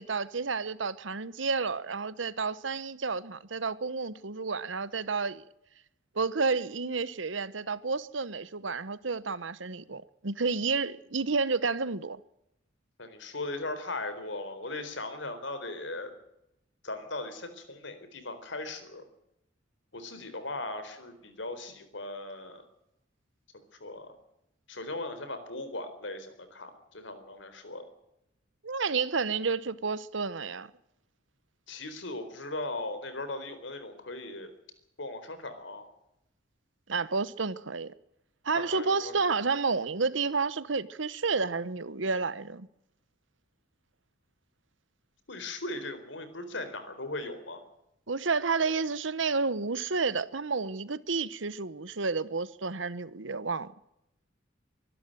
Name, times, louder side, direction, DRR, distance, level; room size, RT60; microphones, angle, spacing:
voice 1, 0.0-5.4 6.1-12.2 28.6-30.7 36.9-37.9 38.4-42.7 48.1-53.7, right 4 dB, 75° right, 1.1 m, -30 dB
voice 2, 13.0-16.1 16.8-19.0 19.9-22.7 23.8-24.1 24.7-27.8 31.7-34.5 35.0-35.9 38.5-39.2 45.3-47.6, left 2 dB, 70° left, 4.2 m, -38 dB
24.0 x 12.5 x 9.1 m
head